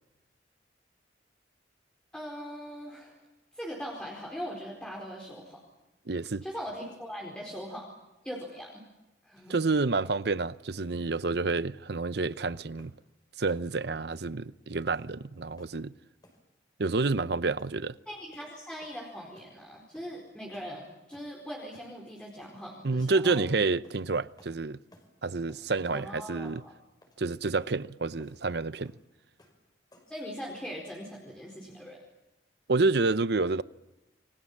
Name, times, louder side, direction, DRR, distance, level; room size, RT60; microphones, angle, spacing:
voice 1, 2.1-3.2 3.5-5.6 6.4-7.9 8.2-8.8 9.2-9.6 18.1-23.5 25.9-26.7 30.1-32.0, equal, 5° left, 4.6 m, -41 dB
voice 2, 6.1-6.4 9.5-12.9 13.4-15.9 16.8-18.0 22.8-24.8 25.2-26.6 27.2-28.9 32.7-33.6, right 3 dB, 60° right, 0.8 m, -29 dB
sound 1, 12.8-13.0 13.5-13.7 14.1-14.3 14.9-15.1 15.6-15.8 16.2-16.4 16.9-17.2 17.6-17.8 18.3-18.5 18.8-19.1 19.4-19.5 19.9-20.1 20.5-20.7 21.1-21.3 21.7-21.9 22.4-22.6 23.3-23.5 23.8-24.0 24.4-24.6 24.9-25.1 25.5-26.0 26.4-26.6 27.0-27.2 27.6-27.8 28.2-28.4 28.8-29.1 29.4-29.6 29.9-30.2, left 1 dB, 20° left, 5.7 m, -58 dB
29.0 x 23.5 x 7.4 m
head